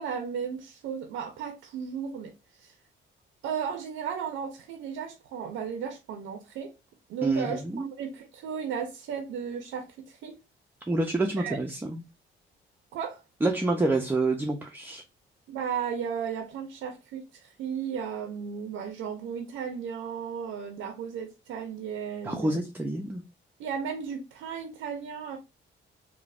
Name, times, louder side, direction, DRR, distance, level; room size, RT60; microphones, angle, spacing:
voice 1, 0.0-2.3 2.6-2.8 3.4-6.7 7.1-10.4 11.3-11.6 12.9-13.2 15.5-22.6 23.6-25.4, right 7 dB, 85° right, 0.5 m, -35 dB
voice 2, 7.2-7.9 10.9-12.0 13.4-15.0 22.2-23.2, right 2 dB, 10° right, 0.4 m, -27 dB
3.2 x 2.1 x 2.4 m
cardioid pair, 90°, 20 cm